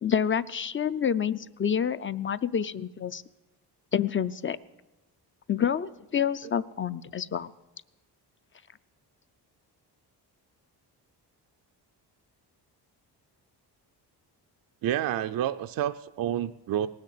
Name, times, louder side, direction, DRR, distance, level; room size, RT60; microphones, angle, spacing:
voice 1, 0.0-3.2 3.9-4.6 5.5-7.5, left 8 dB, 30° left, 14 dB, 0.4 m, -28 dB
voice 2, 14.8-16.9, right 11 dB, 55° right, 10 dB, 0.5 m, -29 dB
19.0 x 6.6 x 8.4 m, 1.0 s
cardioid pair, 100°, 41 cm